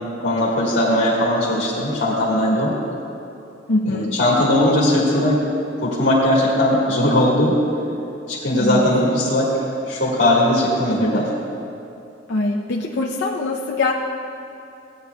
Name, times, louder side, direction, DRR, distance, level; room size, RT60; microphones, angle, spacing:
voice 1, 0.2-2.7 3.9-5.4 5.8-7.6 8.3-9.6 9.9-11.3, left 1 dB, 85° left, -8 dB, 1.7 m, -19 dB
voice 2, 3.7-4.1 8.6-8.8 12.3-13.9, left 2 dB, 65° left, -3 dB, 0.6 m, -22 dB
16.5 x 9.8 x 2.3 m, 2.7 s
head